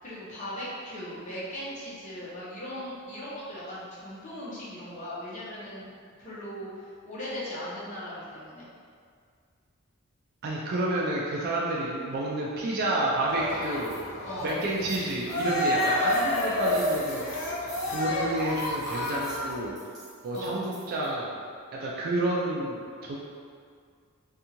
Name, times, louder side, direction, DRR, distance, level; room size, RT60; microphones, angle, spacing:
voice 1, 0.0-5.9 6.2-8.7 14.2-14.5 20.3-20.6, equal, 35° left, -9 dB, 0.8 m, -38 dB
voice 2, 10.4-13.9 14.4-17.2 17.9-19.7 20.2-21.3 21.7-23.2, right 1 dB, 45° right, -4 dB, 0.3 m, -29 dB
Cheering, 13.3-19.7, left 1 dB, 60° left, 0.4 m, -29 dB
sound 1, 13.5-14.0 14.4-21.1, right 1 dB, 20° right, 0.7 m, -47 dB
2.6 x 2.3 x 2.8 m, 2.1 s
head